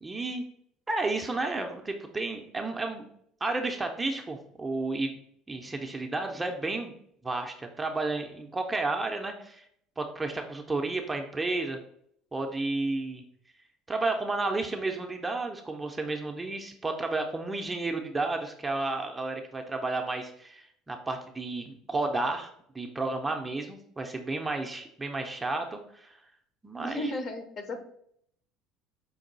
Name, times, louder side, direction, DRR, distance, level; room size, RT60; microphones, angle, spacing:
voice 1, 0.0-0.4 0.9-3.1 3.4-5.1 5.5-6.9 7.2-9.6 10.0-11.8 12.3-13.2 13.9-22.5 22.7-26.2 26.6-27.1, right 3 dB, 15° right, 3 dB, 0.5 m, -32 dB
voice 2, 26.8-27.8, left 3 dB, 35° left, 8 dB, 0.6 m, -34 dB
5.2 x 2.3 x 3.9 m, 0.68 s
cardioid pair, 135°, 0 cm